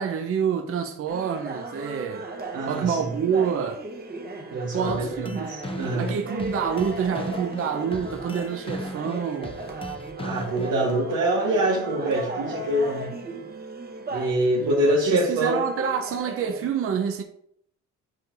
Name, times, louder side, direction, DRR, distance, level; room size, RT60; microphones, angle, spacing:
voice 1, 0.0-2.3 2.7-3.8 4.7-5.6 6.0-9.6 14.6-17.2, right 7 dB, 50° right, 0.7 m, -27 dB
sound 1, 1.1-16.7, right 2 dB, 30° right, 1.1 m, -37 dB
voice 2, 2.5-3.1 4.5-6.1 10.2-13.1 14.1-15.6, right 1 dB, 90° right, 1.2 m, -25 dB
sound 2, 4.9-10.9, left 1 dB, 20° left, 0.6 m, -37 dB
8.2 x 4.5 x 2.6 m
cardioid pair, 90°, 30 cm